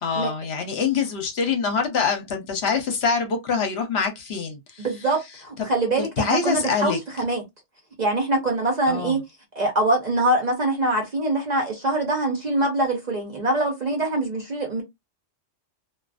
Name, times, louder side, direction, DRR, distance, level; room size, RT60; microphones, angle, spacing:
voice 1, 0.0-4.9 5.6-5.7 6.2-7.0 8.9-9.2, left 5 dB, 60° left, 0.9 m, -25 dB
voice 2, 4.8-7.4 8.0-9.2 9.6-14.8, right 2 dB, 45° right, 0.6 m, -24 dB
2.4 x 2.3 x 2.4 m
omnidirectional pair, 1.2 m